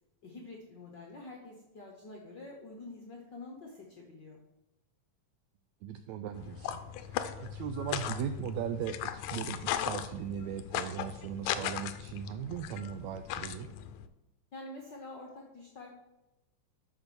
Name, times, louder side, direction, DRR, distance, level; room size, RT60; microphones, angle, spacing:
voice 1, 0.2-4.4 14.5-15.9, left 2 dB, 60° left, 0 dB, 1.1 m, -47 dB
voice 2, 5.8-13.7, right 9 dB, 85° right, 9 dB, 1.6 m, -38 dB
sound 1, 6.4-14.1, left 10 dB, 75° left, 1.9 m, -38 dB
8.7 x 6.2 x 6.7 m, 0.98 s
omnidirectional pair, 3.7 m